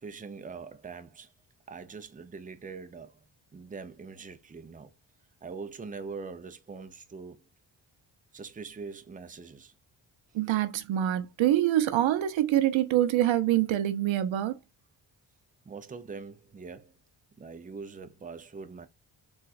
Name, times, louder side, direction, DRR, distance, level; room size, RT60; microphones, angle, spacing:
voice 1, 0.0-1.3 1.7-3.2 3.5-4.9 5.4-7.4 8.3-9.7 15.7-17.0 17.4-18.9, right 4 dB, 20° right, 0.5 m, -43 dB
voice 2, 10.3-14.6, right 12 dB, 80° right, 0.6 m, -25 dB
3.9 x 2.4 x 2.4 m
cardioid pair, 70°, 46 cm